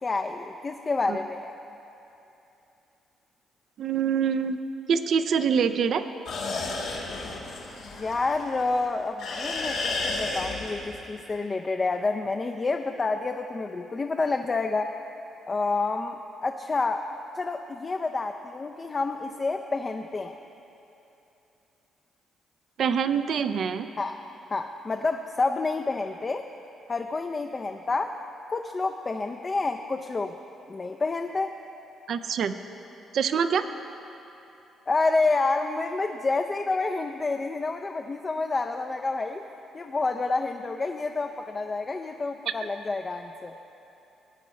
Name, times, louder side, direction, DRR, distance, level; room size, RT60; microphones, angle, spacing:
voice 1, 0.0-1.5 7.8-14.9 15.5-17.1 17.3-20.4 24.0-24.2 24.5-26.5 26.9-28.2 28.5-30.3 30.7-31.6 34.9-39.4 39.7-43.6, left 3 dB, 30° left, 5 dB, 0.4 m, -28 dB
voice 2, 3.8-4.6 4.9-6.1 22.8-23.9 32.1-32.5 33.1-33.7, right 7 dB, 65° right, 10 dB, 0.4 m, -25 dB
sound 1, 6.2-8.8 9.2-11.0, left 3 dB, 85° left, 2.1 m, -32 dB
18.0 x 8.8 x 3.2 m, 2.9 s
cardioid pair, 90°, 0 cm